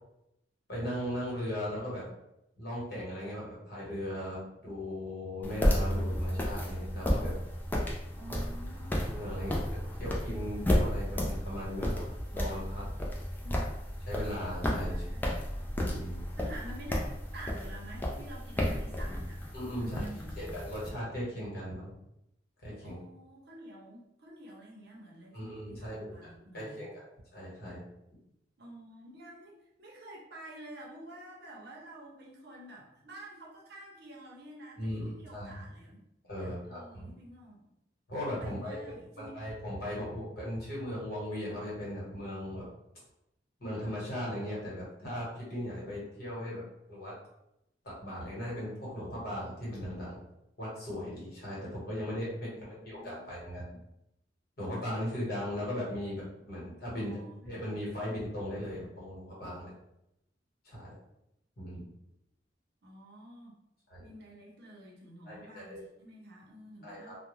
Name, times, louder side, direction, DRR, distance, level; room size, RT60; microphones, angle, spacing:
voice 1, 0.7-2.1 2.6-7.3 8.9-12.8 14.1-15.0 15.8-16.2 19.5-20.0 20.4-21.9 22.6-23.0 25.3-27.0 27.3-27.8 34.8-35.6 36.3-37.1 38.1-38.8 39.2-42.7 43.6-46.6 46.9-47.1 47.8-50.2 50.6-53.7 54.6-57.1 57.4-59.7 60.6-60.9 61.6-61.9 63.9-64.0 65.3-65.8 66.8-67.1, equal, 55° left, -6 dB, 1.2 m, -38 dB
sound 1, 5.4-20.9, equal, 10° left, 0.3 m, -32 dB
voice 2, 8.1-9.0 13.4-13.6 14.9-15.3 16.3-19.4 19.7-20.6 22.8-26.9 28.6-36.0 36.3-37.7 38.4-39.4 46.4-46.7 52.5-53.8 56.9-57.6 62.8-63.6 64.0-67.2, right 1 dB, 60° right, -2 dB, 0.6 m, -49 dB
2.2 x 2.1 x 3.0 m, 0.82 s
head